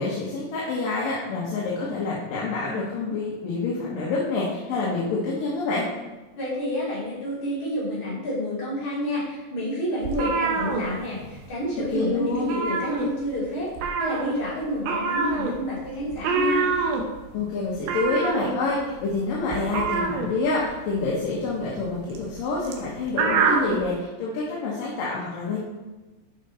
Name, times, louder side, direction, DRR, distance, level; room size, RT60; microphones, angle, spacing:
voice 1, 0.0-5.9 11.9-12.5 17.3-25.6, left 3 dB, 75° left, -6 dB, 3.2 m, -27 dB
voice 2, 6.4-16.7, equal, 55° left, -8 dB, 4.3 m, -29 dB
sound 1, 10.0-11.5 11.8-12.0 12.3-13.4 13.7-23.8, right 4 dB, 80° right, 2.8 m, -26 dB
11.5 x 5.4 x 4.3 m, 1.2 s
omnidirectional pair, 4.0 m